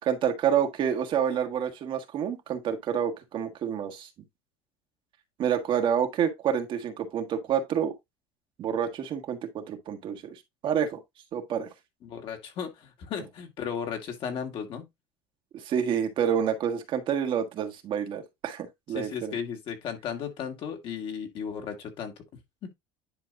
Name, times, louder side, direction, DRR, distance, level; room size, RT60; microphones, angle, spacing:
voice 1, 0.0-4.1 5.4-7.9 8.6-11.0 11.3-11.7 15.5-19.4, right 8 dB, 45° right, 1.5 m, -28 dB
voice 2, 12.0-14.9 18.9-22.1 22.6-22.7, left 7 dB, 45° left, 2.0 m, -35 dB
10.5 x 4.7 x 2.5 m
cardioid pair, 140°, 12 cm